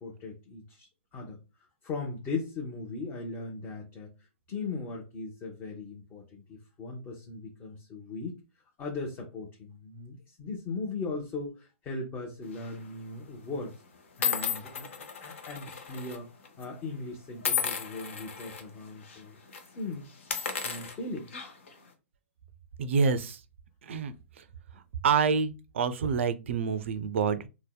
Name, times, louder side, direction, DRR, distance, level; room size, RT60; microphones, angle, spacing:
voice 1, 0.0-1.4 1.8-4.1 4.5-8.4 8.8-13.7 14.2-14.9 15.2-16.3 16.6-19.4 19.8-20.1 20.4-21.3 24.7-24.8, left 3 dB, 25° left, 0.6 m, -38 dB
sound 1, 12.5-12.8 13.6-13.7 14.2-16.2 16.4-16.6 17.4-18.6 19.0-19.2 19.5-19.7 20.2-21.7, left 7 dB, 70° left, 0.6 m, -33 dB
voice 2, 22.8-23.4 23.9-24.1 25.0-27.5, right 5 dB, 70° right, 0.3 m, -27 dB
2.7 x 2.0 x 2.2 m
hypercardioid pair, 125°, 7 cm